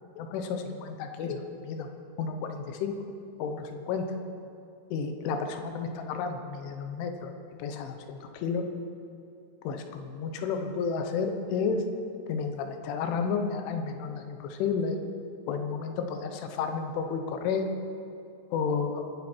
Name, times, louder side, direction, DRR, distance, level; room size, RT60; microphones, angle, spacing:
voice 1, 0.2-1.9 2.2-3.0 3.4-4.1 4.9-7.3 7.6-8.6 9.7-11.8 12.3-15.0 15.5-17.7 18.5-19.0, left 5 dB, 85° left, 5 dB, 3.6 m, -31 dB
25.5 x 11.5 x 4.5 m, 2.6 s
omnidirectional pair, 5.4 m